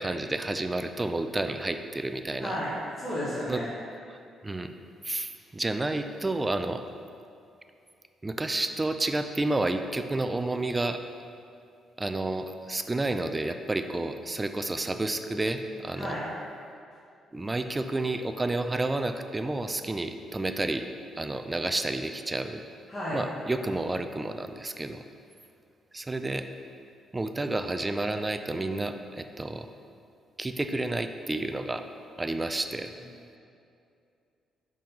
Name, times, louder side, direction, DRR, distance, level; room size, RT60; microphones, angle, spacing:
voice 1, 0.0-2.6 3.5-3.6 4.1-4.7 5.0-6.8 8.2-11.0 12.0-16.2 17.3-20.9 21.2-22.6 23.1-25.0 25.9-26.5 27.1-29.7 30.4-31.8 32.2-32.9, right 2 dB, 20° right, 7 dB, 0.4 m, -30 dB
voice 2, 2.4-3.7 16.0-16.3 22.9-23.2, equal, 20° left, -10 dB, 1.8 m, -32 dB
5.2 x 5.2 x 5.6 m, 2.5 s
cardioid pair, 90°, 0 cm